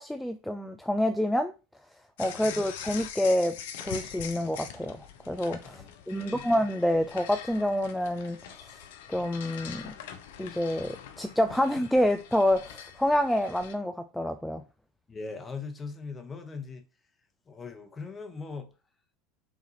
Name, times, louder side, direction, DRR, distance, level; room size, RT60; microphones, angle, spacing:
voice 1, 0.0-1.5 2.2-5.8 6.1-8.4 9.1-9.9 10.4-14.6, left 1 dB, 5° left, 0.3 m, -27 dB
sound 1, 2.2-13.7, left 8 dB, 65° left, 0.6 m, -43 dB
voice 2, 2.3-2.6 5.6-6.5 15.1-16.8 17.5-18.7, left 4 dB, 20° left, 0.9 m, -40 dB
5.4 x 2.5 x 2.8 m
figure-of-eight pair, 80°, 0 cm